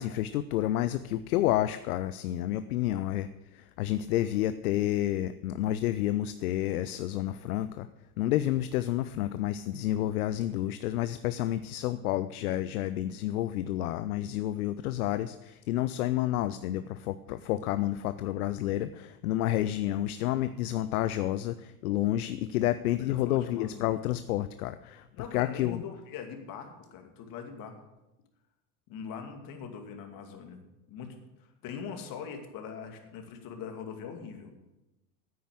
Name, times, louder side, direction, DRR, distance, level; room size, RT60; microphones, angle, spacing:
voice 1, 0.0-7.9 8.2-25.1 25.3-25.8, left 13 dB, 70° left, 13 dB, 0.7 m, -30 dB
voice 2, 23.0-23.9 25.1-27.8 28.9-30.6 30.9-34.5, left 6 dB, 45° left, 5 dB, 2.5 m, -42 dB
9.5 x 9.4 x 7.7 m, 0.97 s
hypercardioid pair, 95°, 46 cm